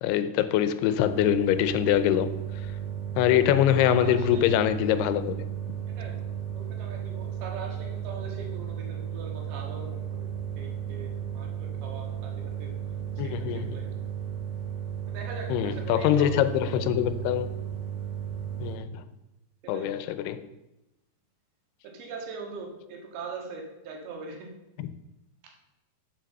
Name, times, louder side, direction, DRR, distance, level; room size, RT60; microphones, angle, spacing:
voice 1, 0.0-2.3 3.2-5.5 13.2-13.8 15.5-17.5 18.6-19.0 19.7-20.5 24.8-24.9, left 11 dB, 90° left, 2.7 m, -24 dB
sound 1, 1.0-18.7, right 9 dB, 30° right, 4.2 m, -34 dB
voice 2, 3.8-4.6 5.9-13.9 15.1-16.9 19.6-20.0 21.8-24.5, right 4 dB, 75° right, 3.5 m, -42 dB
7.7 x 7.6 x 6.6 m
omnidirectional pair, 4.6 m